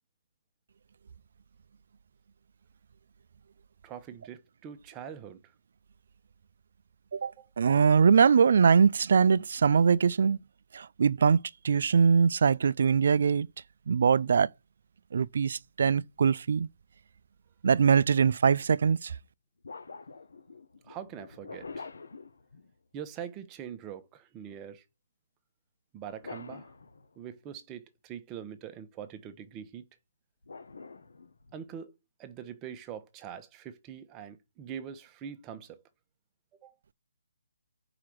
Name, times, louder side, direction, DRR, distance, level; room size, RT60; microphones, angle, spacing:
voice 1, 3.8-5.4 7.4-7.5 20.8-21.9 22.9-24.8 25.9-26.7 27.2-29.8 31.5-31.9 32.2-35.8 36.6-36.7, right 8 dB, 15° right, 0.9 m, -43 dB
voice 2, 7.6-10.4 10.7-13.5 13.9-14.5 15.1-16.7 17.6-19.1, right 6 dB, 55° right, 0.3 m, -22 dB
sound 1, 18.1-18.3 19.6-23.0 26.0-27.4 30.4-31.7, left 4 dB, 75° left, 1.1 m, -46 dB
4.9 x 4.7 x 6.0 m
hypercardioid pair, 160°, 0 cm